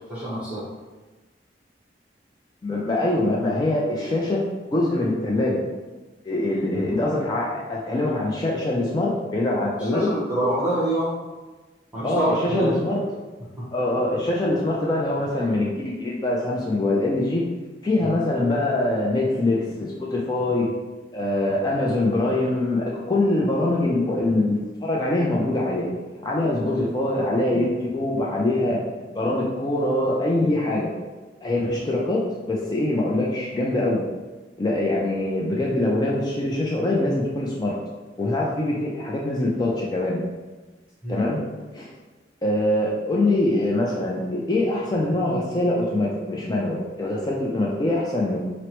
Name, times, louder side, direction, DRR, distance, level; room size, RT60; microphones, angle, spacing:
voice 1, 0.1-0.6 9.8-11.1 11.9-12.7 13.6-13.7 18.0-18.1 26.7-26.8 41.0-41.3, right 1 dB, 10° right, -11 dB, 0.9 m, -25 dB
voice 2, 2.6-4.5 4.7-5.6 6.2-10.1 12.0-13.0 13.7-17.4 17.8-20.7 21.1-25.9 26.2-30.9 31.4-34.0 34.6-37.8 38.2-40.2 41.1-41.4 41.7-41.9 42.4-48.4, left 1 dB, 25° left, -4 dB, 0.3 m, -23 dB
4.3 x 2.0 x 2.9 m, 1.2 s
head